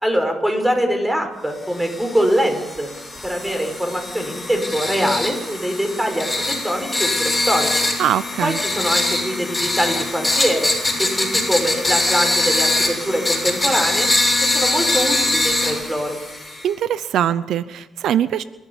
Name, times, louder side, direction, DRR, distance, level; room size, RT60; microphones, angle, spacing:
voice 1, 0.0-2.9 3.2-7.7 8.4-10.7 11.0-14.1 14.4-16.2, equal, 10° right, 5 dB, 5.4 m, -23 dB
sound 1, 1.8-16.7, left 2 dB, 10° left, 7.0 m, -22 dB
voice 2, 8.0-8.6 16.6-18.4, right 10 dB, 75° right, 15 dB, 0.7 m, -21 dB
27.0 x 13.5 x 7.2 m, 0.99 s
cardioid pair, 90°, 0 cm